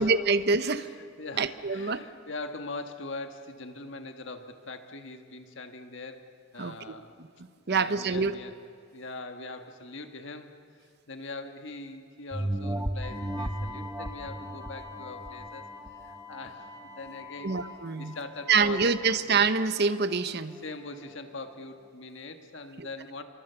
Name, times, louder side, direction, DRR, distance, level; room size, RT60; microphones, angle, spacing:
voice 1, 0.0-0.9 1.4-2.0 6.6-6.7 7.7-8.3 17.4-18.1 18.5-20.6 22.8-22.9, right 4 dB, 50° right, 12 dB, 0.8 m, -25 dB
voice 2, 0.7-7.2 7.7-8.5 8.9-10.5 11.1-15.7 16.0-16.7 17.0-17.5 18.0-19.2 20.6-23.2, left 3 dB, 60° left, 6 dB, 1.6 m, -42 dB
sound 1, 12.3-17.2 17.7-17.8, right 1 dB, 10° right, 0.7 m, -35 dB
Wind instrument woodwind instrument, 13.0-19.3, left 5 dB, 15° left, 1.6 m, -46 dB
27.0 x 23.5 x 6.9 m, 2.3 s
head